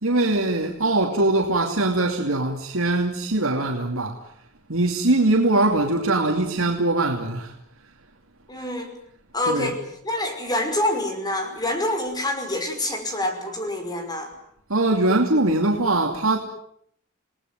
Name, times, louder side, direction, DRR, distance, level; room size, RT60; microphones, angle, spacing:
voice 1, 0.0-4.2 4.7-7.5 9.4-9.7 14.7-16.4, right 2 dB, 70° right, 2.8 m, -22 dB
voice 2, 8.5-8.9 9.3-9.8 10.0-14.3, left 1 dB, 20° left, 5.6 m, -26 dB
29.0 x 19.0 x 9.4 m
head